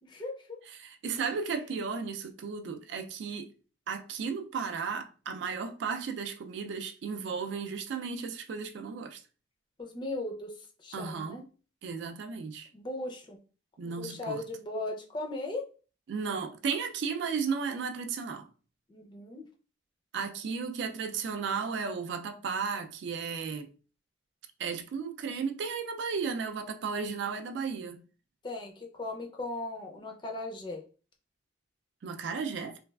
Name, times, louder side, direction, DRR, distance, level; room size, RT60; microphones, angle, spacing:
voice 1, 0.0-0.6 9.8-11.4 12.7-13.4 13.8-15.7 18.9-19.5 28.4-30.8, left 2 dB, 25° left, 0.4 m, -38 dB
voice 2, 0.8-3.5 3.9-9.2 10.9-11.4 11.8-12.7 13.8-14.4 16.1-18.5 20.1-23.7 24.6-28.0 32.0-32.8, right 5 dB, 65° right, 0.3 m, -34 dB
3.1 x 2.3 x 2.2 m
head